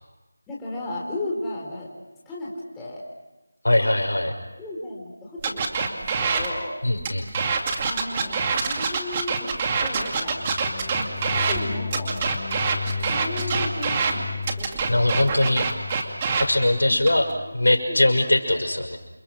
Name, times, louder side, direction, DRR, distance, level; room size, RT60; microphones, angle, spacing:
voice 1, 0.5-1.9 2.3-3.1 4.6-6.8 7.8-9.5 9.8-10.4 10.9-12.2 13.0-14.9 16.9-17.2 17.9-18.2 18.5-18.6, left 1 dB, 5° left, -6 dB, 4.1 m, -34 dB
voice 2, 3.6-4.4 6.8-7.3 14.9-15.7 16.4-17.3 17.5-19.0, left 1 dB, 90° left, 4 dB, 5.7 m, -21 dB
sound 1, 5.4-6.5 7.0-11.6 11.9-14.1 14.4-16.5 17.0-17.3, right 5 dB, 20° right, 2.3 m, -25 dB
sound 2, 10.3-17.6, left 5 dB, 25° left, 1.2 m, -34 dB
28.5 x 27.5 x 6.3 m, 1.1 s
figure-of-eight pair, 170°, 0 cm